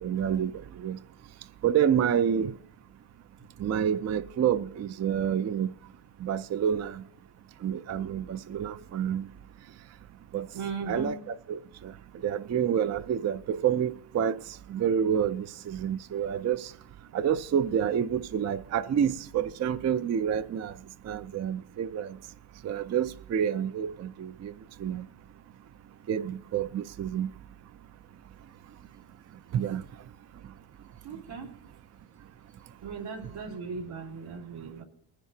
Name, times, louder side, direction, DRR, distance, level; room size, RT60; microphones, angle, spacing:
voice 1, 0.0-0.5 0.8-1.0 1.6-2.5 3.6-5.7 6.2-7.0 7.6-9.2 10.3-10.5 10.9-11.2 11.5-11.9 12.2-14.4 14.7-16.7 17.1-20.7 21.1-22.2 22.6-24.5 24.8-25.1 26.1-27.3 29.5-29.8, right 8 dB, 35° right, 0.4 m, -28 dB
voice 2, 10.5-11.2 31.0-31.5 32.8-34.8, right 4 dB, 90° right, 3.3 m, -37 dB
21.0 x 10.5 x 2.8 m
cardioid pair, 125°, 48 cm